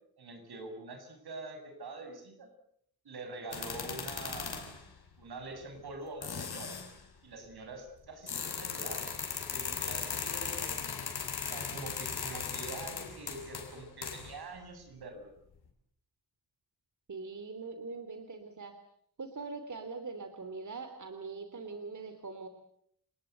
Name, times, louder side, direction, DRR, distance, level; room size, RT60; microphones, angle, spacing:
voice 1, 0.2-2.5 3.0-4.8 5.2-6.8 7.2-9.0 9.3-10.9 11.4-15.3, right 2 dB, 80° right, 5 dB, 7.7 m, -45 dB
sound 1, 3.5-4.8 5.7-5.8 6.2-6.9 8.3-14.4, left 6 dB, 85° left, 5.5 m, -38 dB
voice 2, 17.1-18.7 19.2-22.5, right 4 dB, 50° right, 7 dB, 3.2 m, -42 dB
30.0 x 20.5 x 8.1 m, 0.68 s
wide cardioid pair, 95°, 37 cm